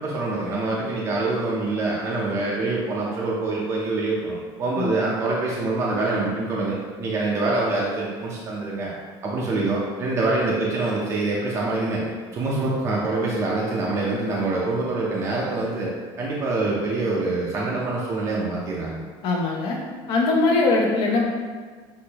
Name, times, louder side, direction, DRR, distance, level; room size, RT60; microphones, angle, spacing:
voice 1, 0.0-8.9 9.2-12.0 12.3-15.9 16.2-19.0, right 2 dB, 30° right, -4 dB, 0.6 m, -25 dB
voice 2, 19.2-19.8 20.1-21.2, left 3 dB, 55° left, -1 dB, 0.8 m, -21 dB
6.2 x 2.6 x 2.8 m, 1.5 s
cardioid pair, 175°, 10 cm